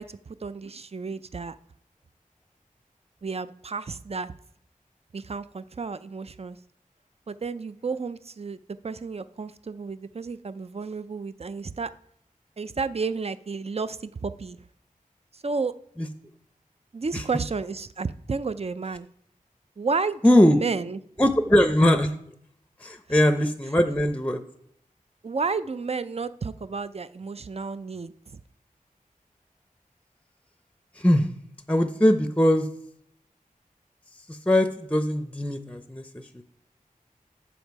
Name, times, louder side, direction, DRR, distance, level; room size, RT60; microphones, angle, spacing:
voice 1, 0.0-1.6 3.2-4.3 5.1-6.6 7.3-8.6 8.8-11.9 12.6-14.6 15.3-15.8 16.9-19.1 19.8-21.0 25.2-28.4, right 4 dB, 45° right, 14 dB, 0.5 m, -32 dB
voice 2, 20.2-20.6 21.2-22.2 22.8-24.4 30.9-31.3 31.7-32.7 34.3-36.4, left 1 dB, 10° left, 8 dB, 0.6 m, -21 dB
7.3 x 7.1 x 4.7 m, 0.71 s
wide cardioid pair, 45°, 15 cm